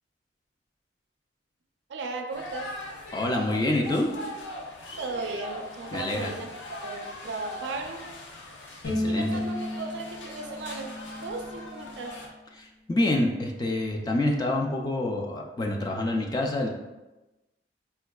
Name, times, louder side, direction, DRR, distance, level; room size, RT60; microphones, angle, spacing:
voice 1, 1.9-2.7 5.0-6.5 6.8-8.0 9.1-12.2, right 3 dB, 75° right, 4 dB, 0.4 m, -36 dB
sound 1, 2.3-12.3, left 2 dB, 90° left, 0.5 m, -41 dB
voice 2, 3.1-4.1 5.9-6.3 8.9-9.4 12.6-16.7, left 1 dB, 20° left, 1 dB, 0.3 m, -27 dB
Bowed string instrument, 8.8-12.1, left 1 dB, 70° left, 0.9 m, -33 dB
4.4 x 2.3 x 2.2 m, 1.1 s
head